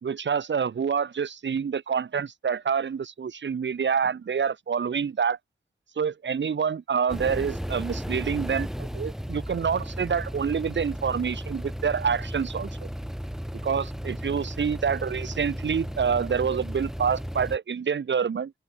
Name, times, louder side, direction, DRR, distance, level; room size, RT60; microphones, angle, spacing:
voice 1, 0.0-5.4 6.0-12.7 13.6-18.5, right 6 dB, 70° right, 0.7 m, -27 dB
sound 1, 7.1-17.6, equal, ahead, 1.3 m, -35 dB
open air
wide cardioid pair, 60°, 20 cm